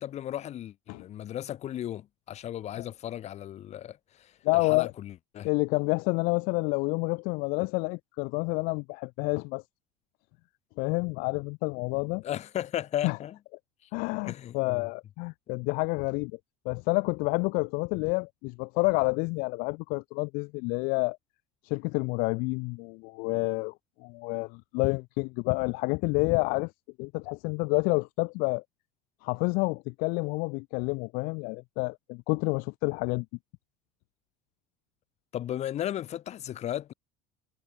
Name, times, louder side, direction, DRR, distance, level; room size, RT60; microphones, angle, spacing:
voice 1, 0.0-5.5 12.2-13.4 13.8-13.9 14.2-14.9 35.3-36.9, left 11 dB, 45° left, 5.4 m, -35 dB
voice 2, 4.4-4.9 5.4-9.6 10.8-12.2 13.0-13.2 13.9-16.3 16.6-21.2 21.6-23.7 24.0-26.7 27.0-28.6 29.2-33.2, left 29 dB, 70° left, 1.7 m, -29 dB
supercardioid pair, 105°, 15 cm